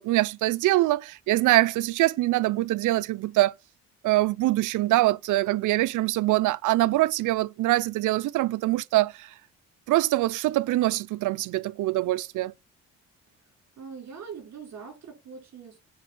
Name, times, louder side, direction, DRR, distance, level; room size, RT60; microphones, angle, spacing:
voice 1, 0.0-3.5 4.0-9.3 9.9-12.5, right 17 dB, 80° right, 0.6 m, -24 dB
voice 2, 13.8-15.8, right 6 dB, 60° right, 5.1 m, -42 dB
9.6 x 4.7 x 6.0 m
cardioid pair, 90°, 30 cm